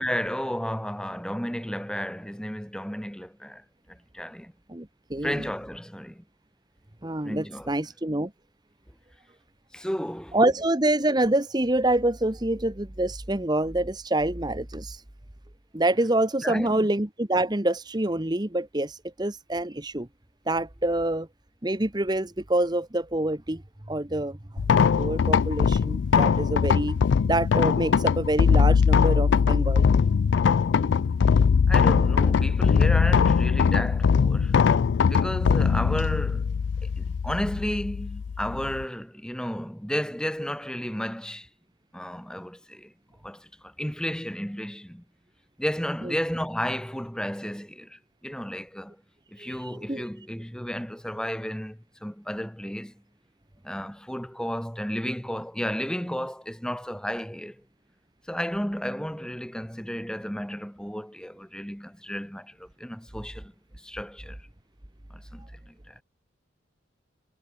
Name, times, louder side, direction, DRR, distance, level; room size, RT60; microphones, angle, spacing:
voice 1, 0.0-4.5 5.2-6.2 7.2-7.7 9.7-10.4 16.4-16.9 31.7-34.7 35.1-36.6 37.0-41.5 41.9-42.9 43.2-45.0 45.6-49.0 49.3-52.9 53.6-57.6 58.3-64.4 65.1-66.0, equal, 5° left, 2.3 m, -33 dB
voice 2, 4.7-5.4 7.0-8.3 10.3-15.0 15.7-20.1 20.5-21.3 21.6-23.6 23.9-24.4 25.0-27.0 27.3-29.9 46.1-46.2 49.4-50.0, right 1 dB, 20° right, 1.2 m, -26 dB
sound 1, 24.6-38.8, left 6 dB, 70° left, 0.3 m, -21 dB
head